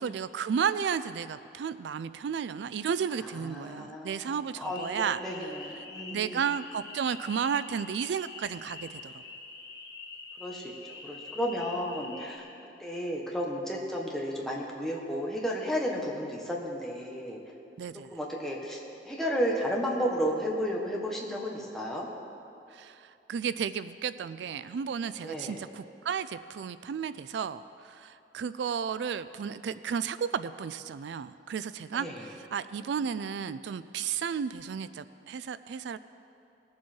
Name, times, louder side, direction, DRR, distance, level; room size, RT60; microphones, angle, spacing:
voice 1, 0.0-5.5 6.1-9.1 17.8-18.1 22.7-36.0, right 7 dB, 85° right, 14 dB, 0.3 m, -33 dB
voice 2, 3.2-6.4 10.4-12.4 12.8-17.4 18.1-22.1 25.2-25.6 31.9-32.3, equal, ahead, -3 dB, 1.5 m, -33 dB
sound 1, 4.6-12.4, left 4 dB, 75° left, 2.4 m, -45 dB
20.5 x 7.4 x 4.6 m, 2.7 s
head